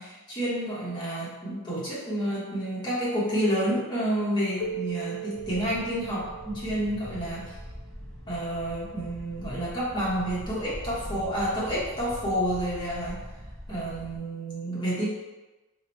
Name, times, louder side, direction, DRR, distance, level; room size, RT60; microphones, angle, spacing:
voice 1, 0.0-7.5 8.3-13.2 13.7-15.1, equal, 20° left, -8 dB, 1.0 m, -29 dB
Keyboard (musical), 4.6-7.8, right 5 dB, 80° left, 0.4 m, -38 dB
sound 1, 5.3-14.2, equal, 5° left, 0.4 m, -42 dB
2.9 x 2.1 x 4.0 m, 1.1 s
head